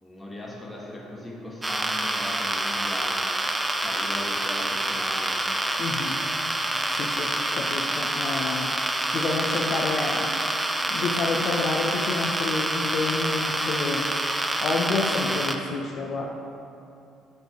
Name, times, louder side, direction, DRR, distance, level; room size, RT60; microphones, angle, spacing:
voice 1, 0.0-3.4 3.8-5.4 6.1-6.2 14.9-15.1, left 1 dB, 20° left, -3 dB, 1.3 m, -38 dB
sound 1, 1.6-15.6, right 1 dB, 15° right, 0.5 m, -27 dB
voice 2, 5.8-6.2 6.9-10.3 10.9-16.3, left 3 dB, 55° left, -1 dB, 0.6 m, -29 dB
5.1 x 4.3 x 4.7 m, 2.5 s
supercardioid pair, 75°, 0 cm